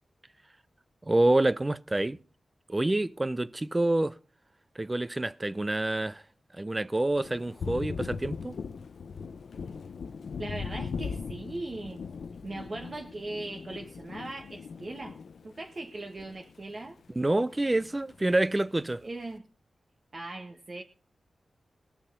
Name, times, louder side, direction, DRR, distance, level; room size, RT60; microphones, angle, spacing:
voice 1, 1.0-2.2 2.7-4.2 4.8-6.2 6.5-8.6 17.2-19.0, right 2 dB, 20° right, 0.6 m, -27 dB
Thunder, 7.1-16.9 17.2-18.4, left 5 dB, 80° left, 0.7 m, -40 dB
voice 2, 10.4-12.0 12.4-17.0 19.0-19.4 20.1-20.8, right 2 dB, 45° right, 1.5 m, -39 dB
19.5 x 7.1 x 5.5 m
cardioid pair, 65°, 0 cm